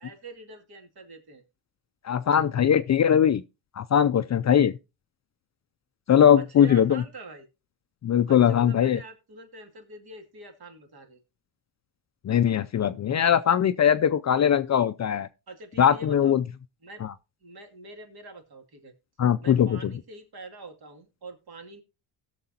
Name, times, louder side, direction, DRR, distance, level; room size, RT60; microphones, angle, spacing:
voice 1, 0.0-1.4 6.3-7.5 8.3-11.2 15.5-16.4 16.8-17.0 17.4-18.9 19.4-21.8, right 2 dB, 50° right, 2.6 m, -44 dB
voice 2, 2.0-3.4 3.8-4.7 6.1-7.0 8.0-9.0 12.2-15.3 15.8-16.4 19.2-19.9, left 9 dB, 35° left, 0.5 m, -21 dB
17.5 x 6.8 x 2.8 m
cardioid pair, 95°, 47 cm